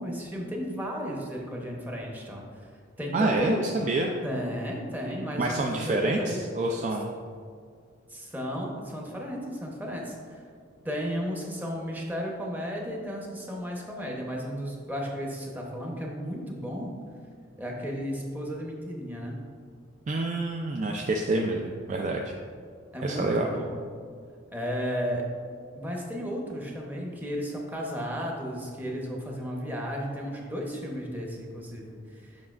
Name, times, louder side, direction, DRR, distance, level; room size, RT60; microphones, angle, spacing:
voice 1, 0.0-2.4 3.0-3.7 4.2-6.4 8.1-10.4 10.8-16.9 17.6-19.4 22.9-23.7 24.5-25.3 25.7-32.4, equal, 10° right, -1 dB, 0.8 m, -34 dB
voice 2, 3.1-4.1 5.4-7.1 20.1-22.3 23.0-23.5, right 2 dB, 40° right, 1 dB, 0.3 m, -27 dB
7.3 x 5.9 x 2.4 m, 2.1 s
head